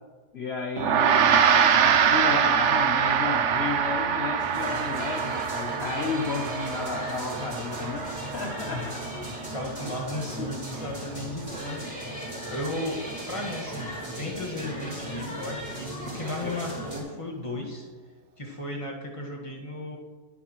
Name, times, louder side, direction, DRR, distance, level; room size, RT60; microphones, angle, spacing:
voice 1, 0.3-9.0 10.4-10.5, left 4 dB, 50° left, 3 dB, 0.8 m, -33 dB
Gong, 0.8-10.4, right 7 dB, 70° right, 0.7 m, -24 dB
sound 1, 4.4-17.0, equal, 20° right, 3.9 m, -37 dB
voice 2, 9.2-11.8 12.2-17.9 18.4-20.0, left 1 dB, 20° left, -1 dB, 1.7 m, -35 dB
21.5 x 8.2 x 3.1 m, 1.4 s
omnidirectional pair, 1.9 m